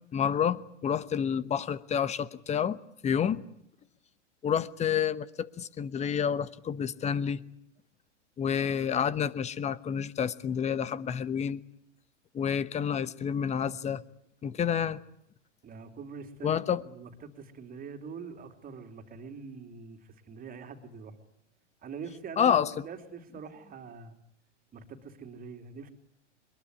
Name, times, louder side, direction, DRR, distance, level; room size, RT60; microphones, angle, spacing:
voice 1, 0.1-2.8 3.0-3.4 4.4-7.4 8.4-11.6 12.3-14.0 14.4-15.0 16.4-16.8 22.4-22.8, left 8 dB, 20° left, 17 dB, 1.0 m, -29 dB
voice 2, 15.6-21.2 21.8-24.2 24.7-25.9, right 5 dB, 25° right, 7 dB, 3.3 m, -44 dB
23.0 x 22.0 x 9.8 m, 0.70 s
hypercardioid pair, 115°, 36 cm